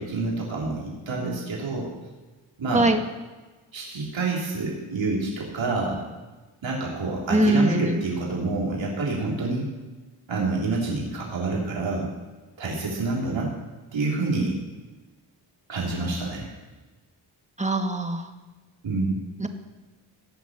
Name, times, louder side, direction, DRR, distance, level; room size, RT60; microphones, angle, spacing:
voice 1, 0.0-1.9 2.6-2.9 3.7-6.0 6.6-9.7 10.3-12.1 12.6-13.5 13.9-14.5 15.7-16.5 18.8-19.1, right 3 dB, 75° right, -4 dB, 3.7 m, -27 dB
voice 2, 7.3-8.0 17.6-18.2 19.4-19.5, right 1 dB, 15° right, 5 dB, 1.9 m, -21 dB
17.0 x 5.9 x 8.9 m, 1.2 s
cardioid pair, 50°, 47 cm